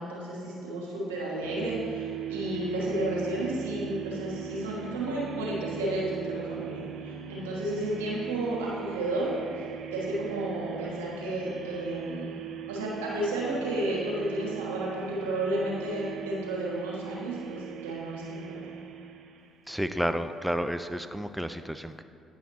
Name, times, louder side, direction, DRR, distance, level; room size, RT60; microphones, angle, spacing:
voice 1, 0.0-9.3 9.9-12.3 12.7-18.7, right 1 dB, 90° right, -5 dB, 1.4 m, -32 dB
sound 1, 1.4-19.7, right 9 dB, 65° right, 0.5 m, -40 dB
voice 2, 19.7-22.0, equal, 5° right, 9 dB, 0.3 m, -31 dB
9.7 x 5.5 x 3.0 m, 2.4 s
hypercardioid pair, 55°, 0 cm